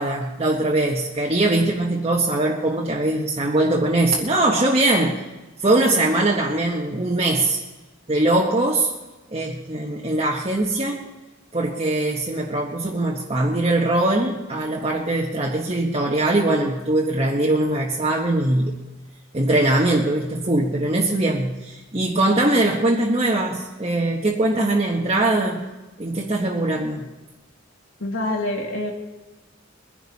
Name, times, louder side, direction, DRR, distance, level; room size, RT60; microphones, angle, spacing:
voice 1, 0.0-5.2 5.6-7.6 8.1-8.9 9.3-11.0 11.5-18.8 19.3-25.6 26.0-27.1, right 2 dB, 30° right, -2 dB, 1.4 m, -21 dB
voice 2, 28.0-28.9, left 1 dB, 80° left, 1 dB, 2.7 m, -26 dB
22.5 x 11.0 x 4.2 m, 1.1 s
head